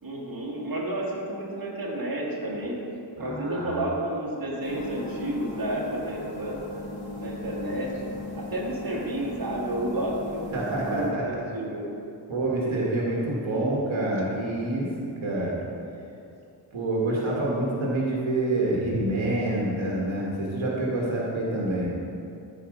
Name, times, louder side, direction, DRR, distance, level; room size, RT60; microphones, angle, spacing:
voice 1, 0.0-2.8 3.2-6.8 7.2-7.9 8.4-10.6 10.9-11.9 12.6-12.8, right 1 dB, 50° right, -4 dB, 2.0 m, -31 dB
voice 2, 3.2-3.8 10.5-11.4 12.3-14.9 15.2-15.6 16.7-21.9, right 2 dB, 80° right, -4 dB, 1.7 m, -27 dB
sound 1, 4.6-11.1, left 2 dB, 85° left, 2.0 m, -38 dB
14.0 x 5.0 x 5.0 m, 2.6 s
wide cardioid pair, 115°, 46 cm